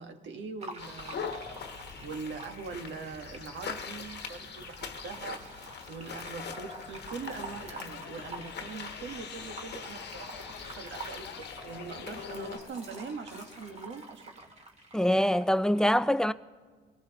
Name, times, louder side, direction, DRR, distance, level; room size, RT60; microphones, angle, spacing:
voice 1, 0.0-1.6 2.0-14.3, right 5 dB, 70° right, 1.5 m, -42 dB
Fill (with liquid), 0.6-15.8, right 2 dB, 35° right, 1.9 m, -48 dB
sound 1, 0.8-12.6, left 6 dB, 60° left, 1.3 m, -42 dB
sound 2, 7.0-14.2, left 11 dB, 80° left, 0.6 m, -50 dB
voice 2, 14.9-16.3, equal, 5° left, 0.4 m, -24 dB
24.0 x 18.5 x 3.0 m
cardioid pair, 90°, 20 cm